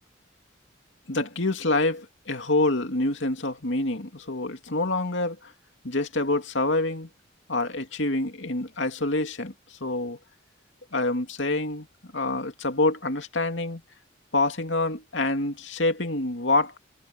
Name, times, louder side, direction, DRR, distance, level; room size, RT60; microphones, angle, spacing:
voice 1, 1.1-5.5 5.8-7.1 7.5-10.2 10.9-11.9 12.1-13.8 14.3-16.8, left 2 dB, 70° left, 2.6 m, -26 dB
head